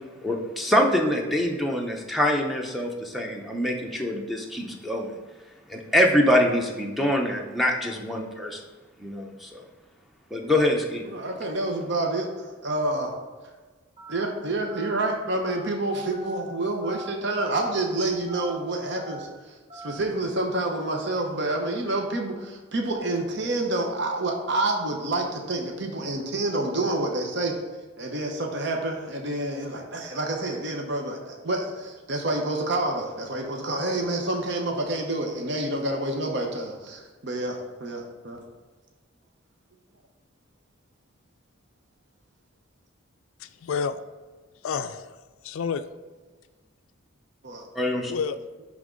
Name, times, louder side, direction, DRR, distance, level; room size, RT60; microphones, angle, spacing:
voice 1, 0.2-5.1 5.7-8.6 9.0-9.6 10.3-11.0 47.8-48.1, left 1 dB, ahead, 1 dB, 0.6 m, -24 dB
voice 2, 11.0-13.1 14.1-19.3 19.8-27.5 28.0-38.4 47.4-47.7, right 2 dB, 55° right, 2 dB, 0.9 m, -28 dB
Telephone, 14.0-14.2 14.7-14.9 15.4-15.7 16.1-16.4 16.8-17.1 17.5-17.8 18.3-18.5 19.0-19.3 19.7-20.0, right 2 dB, 30° right, 1.3 m, -42 dB
voice 3, 43.4-44.0 44.6-45.8 48.0-48.4, left 6 dB, 80° left, 11 dB, 0.3 m, -30 dB
10.5 x 3.6 x 3.8 m, 1.3 s
head